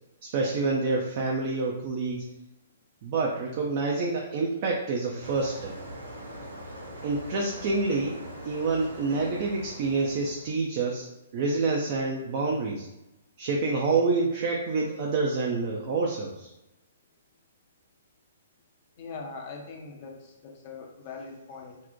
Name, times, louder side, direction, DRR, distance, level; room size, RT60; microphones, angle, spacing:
voice 1, 0.2-2.3 3.0-5.7 7.0-8.2 8.4-11.1 11.3-12.9 13.4-16.5, right 3 dB, 40° right, -2 dB, 0.3 m, -27 dB
sound 1, 5.2-10.5, equal, 75° right, 0.6 m, -42 dB
voice 2, 19.0-21.8, left 4 dB, 40° left, 2 dB, 0.5 m, -41 dB
2.6 x 2.0 x 2.5 m, 0.93 s
figure-of-eight pair, 120°, 0 cm